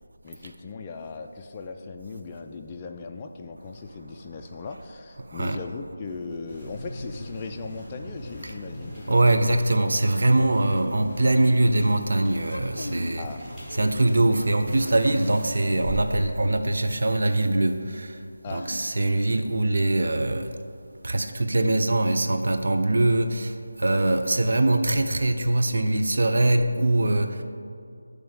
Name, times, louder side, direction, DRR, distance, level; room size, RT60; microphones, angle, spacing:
voice 1, 0.2-9.2 13.2-13.4 18.4-18.8 23.9-24.4, left 4 dB, 20° left, 3 dB, 0.3 m, -38 dB
voice 2, 5.3-5.6 8.4-8.5 9.1-13.3 13.8-18.2 18.5-20.6 21.0-27.4, right 2 dB, 60° right, 6 dB, 0.5 m, -22 dB
sound 1, 6.5-16.9, equal, 10° right, 1.4 m, -39 dB
sound 2, 10.6-11.8 12.3-13.2 13.7-14.6 16.6-16.7 18.5-19.3, left 1 dB, 75° left, 0.5 m, -40 dB
8.7 x 3.2 x 5.0 m, 2.4 s
figure-of-eight pair, 160°, 0 cm